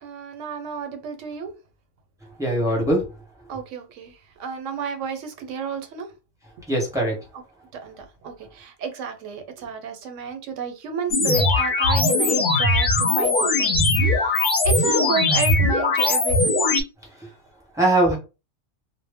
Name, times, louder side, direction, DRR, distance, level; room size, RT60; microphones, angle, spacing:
voice 1, 0.0-1.5 2.7-2.8 3.5-6.1 7.8-16.6, right 6 dB, 90° right, 0.9 m, -32 dB
voice 2, 2.4-3.0 6.7-7.2 17.2-17.3 17.7-18.2, right 1 dB, 5° right, 0.7 m, -21 dB
sound 1, 11.1-16.8, left 2 dB, 50° left, 0.6 m, -20 dB
2.0 x 2.0 x 3.3 m
omnidirectional pair, 1.2 m